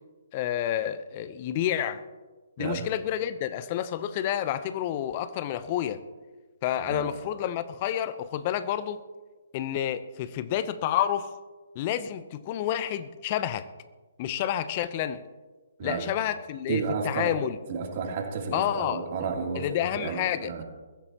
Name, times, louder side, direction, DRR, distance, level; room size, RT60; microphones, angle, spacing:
voice 1, 0.3-2.0 2.6-6.0 6.6-9.0 9.5-11.3 11.7-13.7 14.2-15.2 15.8-17.6 18.5-19.0 19.6-20.6, left 11 dB, 35° left, 13 dB, 0.8 m, -29 dB
voice 2, 6.8-7.1 15.8-16.1 16.7-17.4 17.7-20.6, right 5 dB, 40° right, 0 dB, 3.1 m, -32 dB
22.0 x 15.0 x 3.0 m, 1.3 s
figure-of-eight pair, 135°, 0 cm